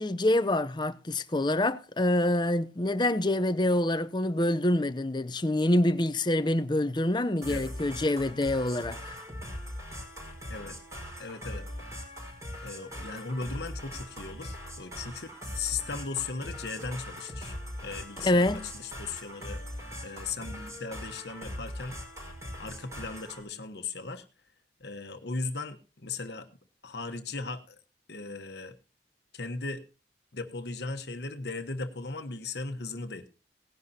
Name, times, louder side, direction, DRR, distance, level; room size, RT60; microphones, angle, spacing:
voice 1, 0.0-9.1 18.2-18.6, left 1 dB, 25° left, 0.7 m, -26 dB
sound 1, 7.4-23.4, equal, 15° right, 4.7 m, -41 dB
voice 2, 11.2-11.6 12.6-15.3 15.5-17.5 17.8-19.6 20.0-22.0 22.6-24.2 24.8-26.5 26.8-27.8 28.1-28.7 29.3-29.8 30.3-33.3, left 4 dB, 65° left, 1.2 m, -37 dB
18.0 x 11.0 x 2.8 m
head